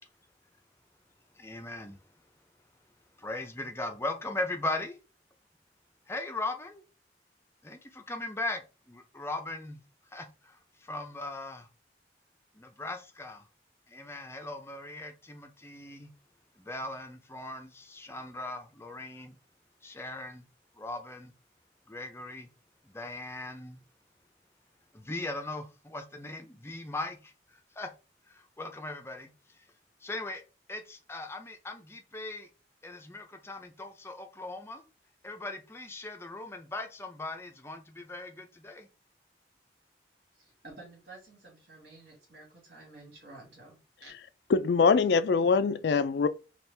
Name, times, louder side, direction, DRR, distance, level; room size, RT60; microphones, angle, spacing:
voice 1, 1.4-2.0 3.2-5.0 6.1-6.8 7.6-8.6 8.9-9.8 10.1-11.7 12.5-13.5 13.9-16.1 16.6-19.4 19.8-20.4 20.8-21.3 21.9-22.5 22.9-23.8 24.9-27.9 28.3-29.3 30.0-30.4 30.7-32.5 32.8-34.8 35.2-38.9, left 2 dB, 15° left, 0.5 m, -39 dB
voice 2, 40.3-44.1, right 2 dB, 65° right, 2.1 m, -51 dB
voice 3, 44.5-46.3, left 5 dB, 70° left, 0.3 m, -23 dB
4.3 x 2.4 x 3.3 m
head